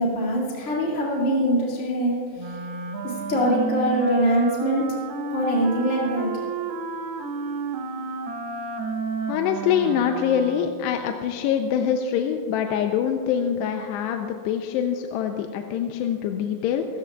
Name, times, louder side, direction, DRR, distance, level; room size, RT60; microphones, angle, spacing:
voice 1, 0.0-2.6 3.0-4.9 5.3-6.3, equal, 30° left, -5 dB, 1.4 m, -23 dB
Wind instrument woodwind instrument, 2.4-10.9, right 4 dB, 75° right, 2.7 m, -32 dB
voice 2, 9.3-16.9, left 8 dB, 85° left, 4 dB, 2.8 m, -24 dB
24.0 x 14.0 x 2.4 m, 2.3 s
omnidirectional pair, 4.9 m